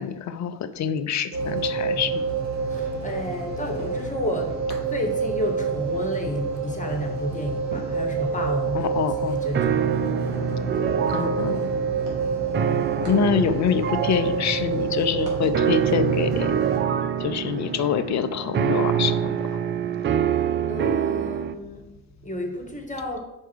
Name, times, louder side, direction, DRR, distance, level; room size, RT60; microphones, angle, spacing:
voice 1, 0.0-2.2 8.9-9.4 11.1-11.7 13.1-16.5 17.2-19.4, left 7 dB, 35° left, 11 dB, 0.7 m, -25 dB
sound 1, 1.3-16.8, right 4 dB, 75° right, 2.4 m, -28 dB
voice 2, 2.6-10.3 13.0-13.1 20.4-23.2, left 1 dB, 15° left, 3 dB, 1.7 m, -32 dB
sound 2, 9.5-21.5, right 9 dB, 25° right, 0.5 m, -26 dB
5.5 x 4.6 x 6.3 m, 0.96 s
hypercardioid pair, 65°, 47 cm